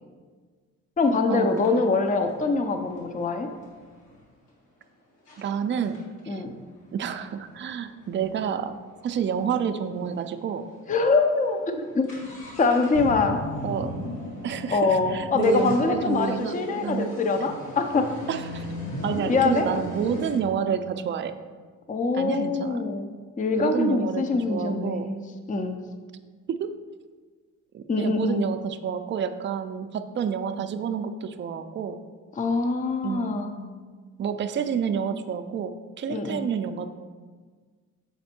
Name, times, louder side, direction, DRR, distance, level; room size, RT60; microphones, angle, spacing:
sound 1, 1.0-1.1 1.6-4.2 4.8-4.9 5.3-5.4 5.8-9.5 9.8-9.9 10.1-10.2 10.8-10.9 11.2-20.4, equal, 75° left, 2.1 m, -37 dB
voice 1, 1.0-3.5 6.3-6.5 10.9-12.1 12.6-13.4 14.7-18.1 19.3-19.7 21.9-23.1 23.4-25.2 25.5-25.8 27.9-28.4 32.4-33.5 36.1-36.5, left 3 dB, 25° left, 6 dB, 0.6 m, -24 dB
voice 2, 5.4-6.4 6.9-10.7 13.6-14.1 14.4-17.2 18.3-18.7 19.0-21.4 22.1-22.9 23.6-25.2 26.5-26.8 27.7-32.0 33.0-33.7 34.2-36.9, right 7 dB, 35° right, 8 dB, 0.4 m, -29 dB
7.1 x 4.3 x 4.3 m, 1.5 s
cardioid pair, 85°, 32 cm